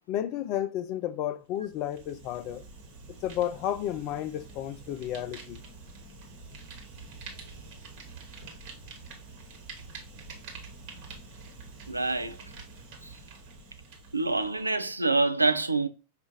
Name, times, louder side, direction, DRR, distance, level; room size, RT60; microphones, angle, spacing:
voice 1, 0.1-2.6 3.2-5.6, left 11 dB, 40° left, 0.4 m, -32 dB
Fire, 1.6-14.9, right 3 dB, 50° right, 1.2 m, -47 dB
voice 2, 11.9-12.4 13.0-13.2 14.1-15.9, right 3 dB, 85° right, 0.3 m, -26 dB
5.3 x 2.4 x 2.9 m
figure-of-eight pair, 90°, 0 cm